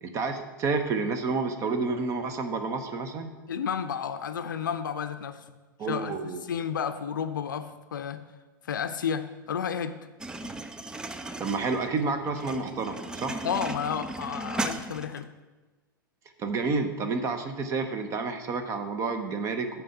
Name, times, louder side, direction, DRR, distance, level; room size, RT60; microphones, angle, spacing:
voice 1, 0.0-3.3 5.8-6.4 11.4-13.4 16.4-19.7, right 4 dB, 25° right, 7 dB, 0.8 m, -29 dB
voice 2, 3.5-5.5 5.9-8.2 8.6-10.0 13.4-15.3, left 7 dB, 60° left, 11 dB, 0.6 m, -32 dB
sound 1, 10.2-15.2, right 2 dB, 5° right, 0.4 m, -36 dB
8.9 x 4.6 x 6.6 m, 1.2 s
figure-of-eight pair, 95°, 12 cm